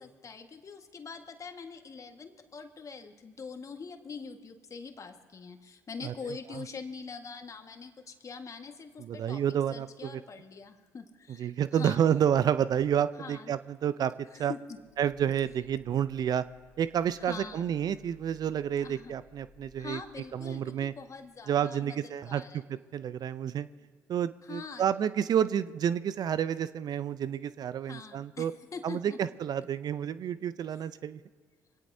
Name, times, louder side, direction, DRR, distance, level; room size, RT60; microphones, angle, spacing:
voice 1, 0.0-12.0 13.2-13.5 14.3-14.8 17.2-17.7 18.8-19.2 19.8-22.6 24.4-24.9 27.8-29.2, left 5 dB, 40° left, 6 dB, 1.6 m, -44 dB
voice 2, 9.0-10.2 11.4-14.5 15.0-16.4 16.8-20.0 20.3-20.9 21.5-22.4 22.7-23.7 24.1-28.5 28.8-31.2, right 9 dB, 55° right, 15 dB, 0.5 m, -29 dB
sound 1, 14.7-21.4, left 3 dB, 85° right, 3.4 m, -60 dB
25.0 x 17.5 x 2.7 m, 1.5 s
hypercardioid pair, 50°, 8 cm